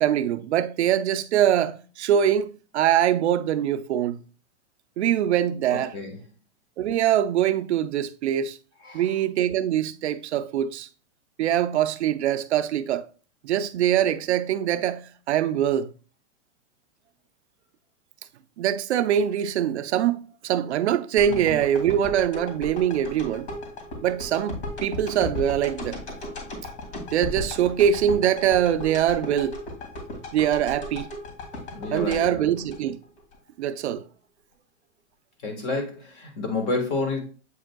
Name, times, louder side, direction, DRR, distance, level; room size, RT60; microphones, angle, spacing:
voice 1, 0.0-4.2 5.0-5.9 6.8-8.6 8.9-10.9 11.4-13.1 13.4-15.9 18.6-23.5 24.0-26.0 27.1-29.6 30.3-31.1 31.9-33.0 33.6-34.1, right 10 dB, 65° right, 0.6 m, -23 dB
voice 2, 5.7-6.2 8.8-9.1 21.4-21.6 31.7-32.5 35.4-37.2, left 3 dB, 25° left, 1.4 m, -30 dB
sound 1, 21.2-33.4 33.8-33.9, left 1 dB, 45° left, 2.2 m, -36 dB
8.1 x 5.1 x 2.3 m
supercardioid pair, 175°, 36 cm